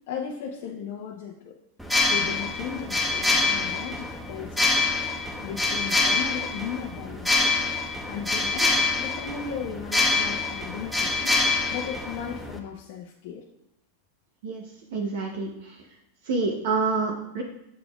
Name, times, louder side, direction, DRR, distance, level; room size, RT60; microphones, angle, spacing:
voice 1, 0.1-1.5 2.1-4.9 5.4-7.6 8.1-11.4 11.7-13.4, left 7 dB, 60° left, -1 dB, 0.7 m, -36 dB
sound 1, 1.8-12.6, left 3 dB, ahead, 0.9 m, -26 dB
voice 2, 14.9-15.9 16.2-17.4, right 4 dB, 65° right, 2 dB, 0.8 m, -27 dB
7.9 x 5.1 x 2.4 m, 0.83 s
hypercardioid pair, 100°, 0 cm